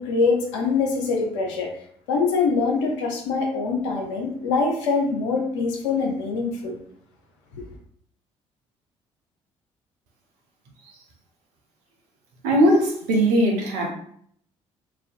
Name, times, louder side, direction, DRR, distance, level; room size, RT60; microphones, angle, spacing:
voice 1, 0.0-1.7 2.1-6.8 7.6-7.7, left 4 dB, 70° left, 2 dB, 0.5 m, -24 dB
voice 2, 12.4-13.9, equal, 60° right, 0 dB, 0.7 m, -19 dB
2.4 x 2.2 x 2.4 m, 0.63 s
figure-of-eight pair, 50°, 16 cm